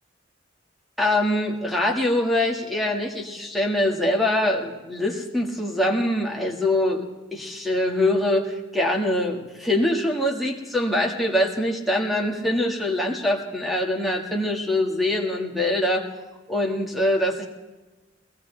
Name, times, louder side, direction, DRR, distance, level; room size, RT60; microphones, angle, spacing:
voice 1, 1.0-7.1 7.3-16.1 16.5-17.5, left 1 dB, ahead, 1 dB, 1.9 m, -23 dB
21.5 x 18.0 x 3.4 m, 1.2 s
head